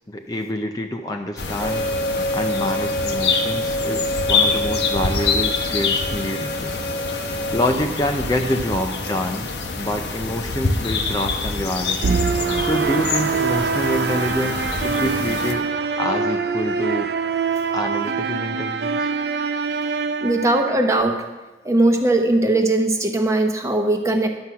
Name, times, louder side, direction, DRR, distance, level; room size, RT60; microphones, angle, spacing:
voice 1, 0.1-1.9 2.3-6.7 7.5-9.5 9.8-12.2 12.6-15.7 16.0-17.1 17.7-19.1, left 1 dB, 20° left, 4 dB, 0.5 m, -26 dB
sound 1, 1.4-15.5, left 4 dB, 75° left, 1.1 m, -26 dB
sound 2, 1.6-7.7, equal, 55° left, 1.1 m, -27 dB
sound 3, 12.0-21.0, right 5 dB, 65° right, 0.5 m, -24 dB
voice 2, 20.2-21.2 21.6-24.3, right 2 dB, 15° right, 4 dB, 0.9 m, -19 dB
11.0 x 7.7 x 5.7 m, 1.2 s
head